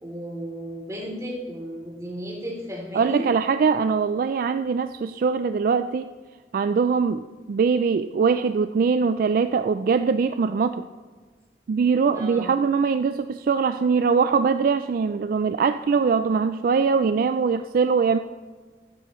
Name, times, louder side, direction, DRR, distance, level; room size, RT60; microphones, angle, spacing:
voice 1, 0.0-3.3 12.1-12.5, equal, 20° right, -3 dB, 3.1 m, -34 dB
voice 2, 2.9-6.1 6.5-10.9 11.7-18.2, right 5 dB, 55° right, 10 dB, 0.3 m, -22 dB
15.0 x 12.0 x 3.1 m, 1.4 s
head